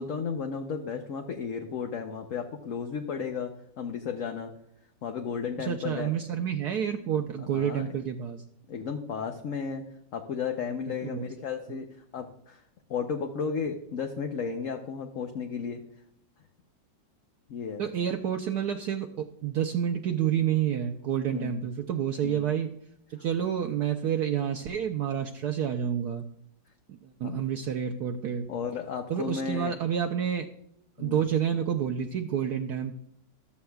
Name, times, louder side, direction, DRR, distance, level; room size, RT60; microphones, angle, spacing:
voice 1, 0.0-4.5 5.0-6.1 7.4-7.9 8.7-9.8 10.1-11.9 12.1-12.6 12.9-15.8 17.5-17.8 21.2-21.7 22.2-22.5 27.2-27.4 28.5-29.8 31.0-31.2, left 6 dB, 55° left, 4 dB, 1.0 m, -34 dB
voice 2, 5.6-8.4 11.0-11.3 11.7-11.8 17.8-22.7 23.1-26.2 26.9-28.5 29.1-30.5 31.0-32.9, right 9 dB, 70° right, 5 dB, 1.1 m, -29 dB
14.0 x 12.5 x 2.3 m, 0.72 s
omnidirectional pair, 2.0 m